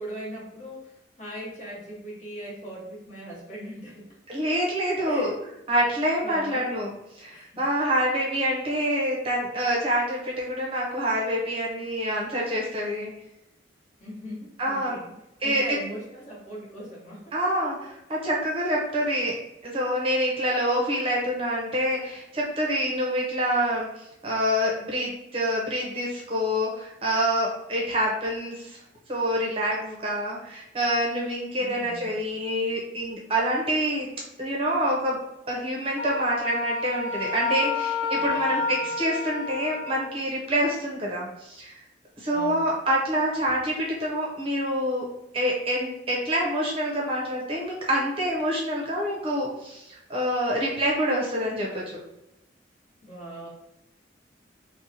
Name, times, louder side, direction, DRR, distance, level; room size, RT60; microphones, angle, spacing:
voice 1, 0.0-4.2 5.0-5.5 6.2-6.7 7.3-7.6 14.0-15.1 15.4-17.3 31.5-32.2 38.1-38.7 42.3-42.7 53.0-53.5, equal, 40° left, -6 dB, 1.0 m, -39 dB
voice 2, 4.3-5.3 5.7-13.1 14.6-15.0 15.4-15.6 17.3-19.3 19.6-23.9 24.2-28.8 29.1-34.1 34.4-35.2 35.5-41.8 42.2-45.0 45.3-52.0, equal, 30° right, -3 dB, 0.6 m, -26 dB
Wind instrument woodwind instrument, 36.0-40.1, left 4 dB, 85° left, 0.4 m, -30 dB
2.6 x 2.1 x 2.7 m, 0.89 s
head